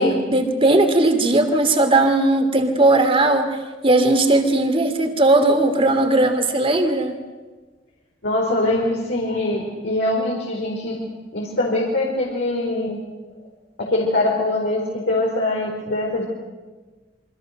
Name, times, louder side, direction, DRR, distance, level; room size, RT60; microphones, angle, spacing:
voice 1, 0.3-7.1, right 2 dB, 30° right, 7 dB, 2.8 m, -18 dB
voice 2, 8.2-11.0 11.3-13.0 13.8-16.2, left 2 dB, 70° left, -4 dB, 4.6 m, -23 dB
27.0 x 25.0 x 6.7 m, 1.3 s
head